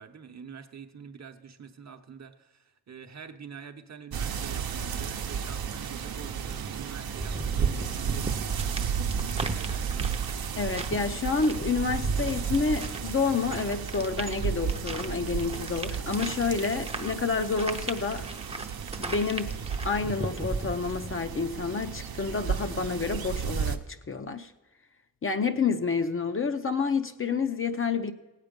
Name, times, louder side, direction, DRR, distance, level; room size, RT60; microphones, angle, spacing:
voice 1, 0.0-10.1, right 6 dB, 45° right, 0.8 m, -46 dB
sound 1, 4.1-23.8, right 7 dB, 75° right, 0.8 m, -33 dB
sound 2, 7.2-21.2, right 2 dB, 15° right, 0.7 m, -38 dB
voice 2, 10.6-18.3 19.0-19.5 19.8-23.8 24.1-24.5 25.2-28.1, left 4 dB, 35° left, 0.6 m, -29 dB
17.5 x 8.3 x 5.2 m
wide cardioid pair, 140°, 37 cm